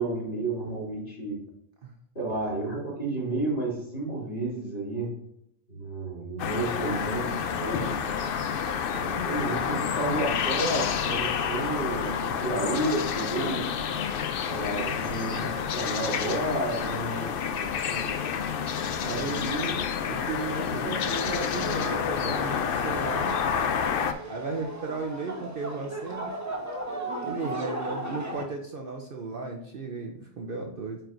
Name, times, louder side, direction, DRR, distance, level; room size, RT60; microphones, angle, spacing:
voice 1, 0.0-1.4 2.1-5.1 5.7-8.0 8.9-13.6 14.5-18.0 18.8-19.7 20.6-20.9, right 2 dB, 40° left, -6 dB, 2.8 m, -31 dB
sound 1, 6.4-24.1, left 7 dB, 60° left, 0.6 m, -29 dB
voice 2, 19.0-19.5 20.1-23.4 24.3-26.3 27.2-31.0, right 3 dB, 50° right, 2 dB, 0.8 m, -35 dB
sound 2, 21.0-28.4, right 2 dB, 15° right, 1.0 m, -36 dB
8.9 x 4.5 x 2.6 m, 0.76 s
omnidirectional pair, 1.3 m